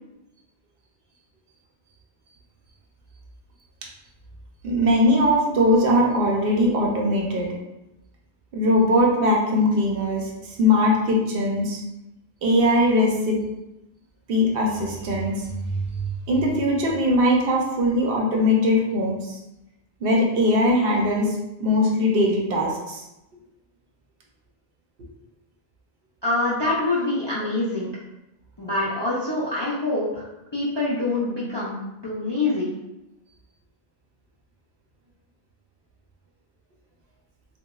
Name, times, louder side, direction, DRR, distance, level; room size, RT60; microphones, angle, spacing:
voice 1, 4.6-7.5 8.5-10.3 10.6-11.8 12.4-13.4 14.3-19.4 20.0-23.0, left 1 dB, 70° right, -1 dB, 0.7 m, -21 dB
voice 2, 26.2-27.9 28.6-30.3 30.5-31.8 32.0-32.7, left 2 dB, 40° left, -8 dB, 0.4 m, -25 dB
2.8 x 2.1 x 2.3 m, 0.93 s
omnidirectional pair, 1.0 m